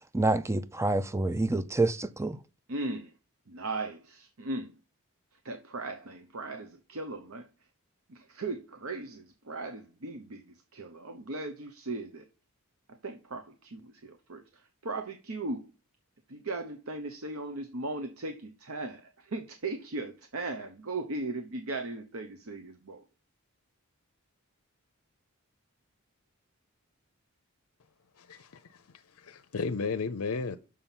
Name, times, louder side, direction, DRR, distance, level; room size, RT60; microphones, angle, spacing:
voice 1, 0.1-2.4, right 2 dB, 15° right, 0.5 m, -27 dB
voice 2, 2.7-3.1 3.5-4.8 5.3-7.5 8.1-12.2 12.9-15.7 16.3-23.0, right 2 dB, 70° right, 0.9 m, -38 dB
voice 3, 28.2-28.8 29.1-30.6, left 4 dB, 75° left, 0.6 m, -34 dB
6.5 x 5.7 x 7.2 m
head